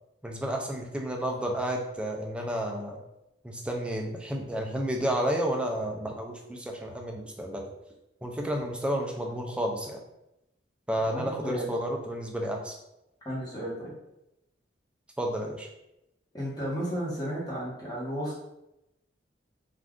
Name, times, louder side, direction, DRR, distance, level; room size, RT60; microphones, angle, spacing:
voice 1, 0.2-3.0 3.4-7.7 8.2-10.0 10.9-12.8 15.2-15.7, right 1 dB, 5° right, 1 dB, 0.3 m, -31 dB
voice 2, 11.1-11.7 13.2-13.9 16.3-18.4, equal, 20° left, -6 dB, 1.0 m, -33 dB
2.5 x 2.4 x 3.5 m, 0.88 s
head